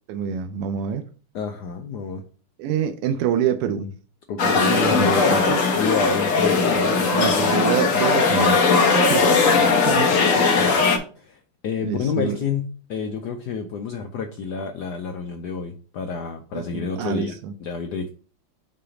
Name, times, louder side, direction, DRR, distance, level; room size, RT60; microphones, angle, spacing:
voice 1, 0.1-1.0 2.6-3.9 4.4-5.6 7.1-8.8 9.1-9.2 9.9-10.1 11.8-12.4 16.5-17.5, right 7 dB, 90° right, 1.5 m, -26 dB
voice 2, 1.3-2.2 4.3-7.4 9.5-10.9 11.2-18.1, left 6 dB, 85° left, 0.9 m, -29 dB
sound 1, 4.4-11.0, left 4 dB, 50° left, 1.0 m, -19 dB
5.7 x 3.3 x 5.0 m
omnidirectional pair, 2.4 m